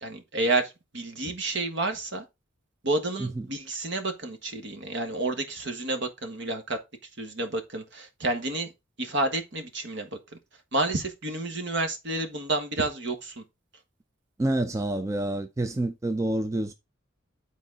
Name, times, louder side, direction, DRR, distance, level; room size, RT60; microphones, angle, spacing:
voice 1, 0.0-2.2 2.8-6.8 7.2-8.7 9.0-10.1 10.7-13.4, right 2 dB, 60° right, 1.4 m, -30 dB
voice 2, 14.4-16.7, right 1 dB, 15° right, 0.3 m, -28 dB
9.8 x 4.1 x 3.9 m
head